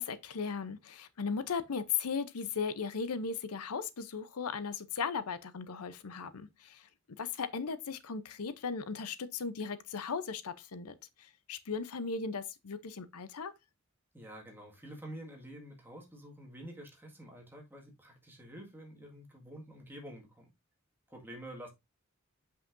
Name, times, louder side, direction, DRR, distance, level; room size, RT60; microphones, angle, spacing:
voice 1, 0.0-6.9 7.2-13.5, left 5 dB, 90° left, 0.7 m, -37 dB
voice 2, 14.1-20.5 21.1-21.7, right 1 dB, 10° right, 1.8 m, -48 dB
7.5 x 5.6 x 2.6 m
head